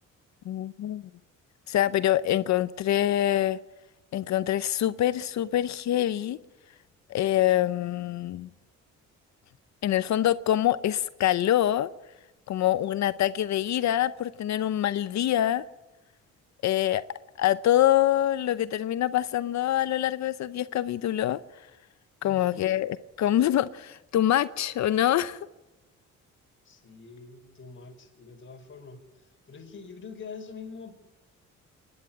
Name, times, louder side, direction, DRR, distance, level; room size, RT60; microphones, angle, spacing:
voice 1, 0.5-1.1 1.7-3.6 4.1-6.4 7.1-8.5 9.8-11.9 12.5-15.6 16.6-17.0 17.4-21.4 22.2-25.4, left 12 dB, 65° left, 0.7 m, -25 dB
voice 2, 22.2-22.8 26.6-30.9, left 5 dB, 40° left, 4.3 m, -45 dB
27.0 x 11.0 x 10.0 m
cardioid pair, 90°, 30 cm